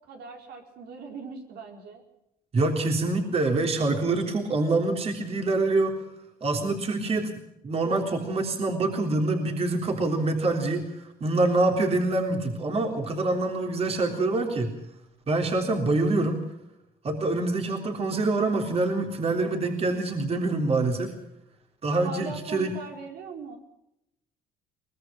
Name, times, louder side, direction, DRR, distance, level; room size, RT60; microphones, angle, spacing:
voice 1, 0.1-2.0 21.9-23.6, right 4 dB, 75° right, 2 dB, 4.5 m, -40 dB
voice 2, 2.5-6.0 6.4-7.3 7.6-14.7 15.3-16.4 17.0-21.1 21.8-22.7, right 2 dB, 35° right, 3 dB, 3.6 m, -25 dB
23.0 x 20.0 x 6.0 m, 0.83 s
cardioid pair, 110°, 17 cm